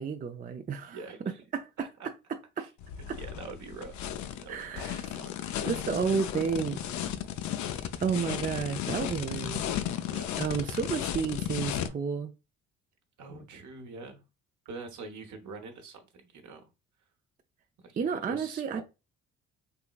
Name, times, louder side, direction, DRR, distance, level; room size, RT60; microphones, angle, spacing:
voice 1, 0.0-1.0 1.5-1.7 2.6-2.7 3.1-3.2 4.5-5.1 5.6-6.8 8.0-9.6 10.4-12.3 18.0-18.8, right 6 dB, 25° right, 0.4 m, -31 dB
voice 2, 0.8-1.4 1.8-2.1 2.6-4.0 4.4-5.5 5.9-6.0 6.3-6.4 10.0-10.4 13.2-14.2 14.7-16.7 17.8-18.8, right 4 dB, 60° right, 1.0 m, -45 dB
sound 1, 2.8-11.9, left 10 dB, 60° left, 0.6 m, -34 dB
3.6 x 2.9 x 2.4 m
hypercardioid pair, 60°, 33 cm